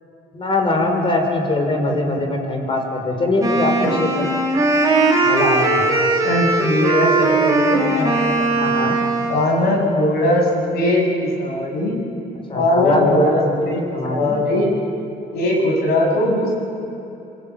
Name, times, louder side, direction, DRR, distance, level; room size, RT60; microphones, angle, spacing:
voice 1, 0.3-3.7 4.0-4.2 5.2-5.8 8.6-9.0 12.5-13.3 13.6-14.3, left 2 dB, 30° left, 3 dB, 5.9 m, -21 dB
voice 2, 1.8-2.2 3.4-3.5 3.8-3.9 6.2-8.7 9.3-12.0 12.5-14.8 15.3-16.5, left 1 dB, 70° left, 1 dB, 7.9 m, -20 dB
Wind instrument woodwind instrument, 3.4-9.6, right 3 dB, 20° right, 5.1 m, -19 dB
27.0 x 21.5 x 9.2 m, 2.9 s
cardioid pair, 110°, 17 cm